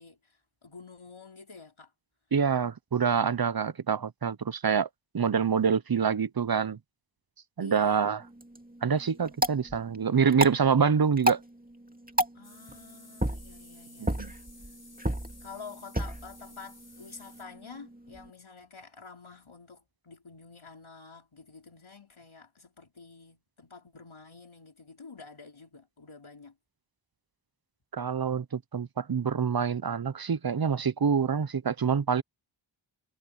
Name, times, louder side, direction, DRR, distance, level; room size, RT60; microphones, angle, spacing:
voice 1, 0.0-1.9 7.6-8.1 12.3-14.4 15.4-26.6, left 4 dB, 85° left, 4.0 m, -49 dB
voice 2, 2.3-4.9 5.1-6.8 7.6-8.2 8.8-11.4 14.0-14.3 27.9-32.2, right 6 dB, 50° right, 0.7 m, -26 dB
sound 1, 8.2-18.3, right 1 dB, 20° right, 2.7 m, -34 dB
sound 2, 12.4-17.5, left 2 dB, 40° left, 5.6 m, -54 dB
wide cardioid pair, 50°, 47 cm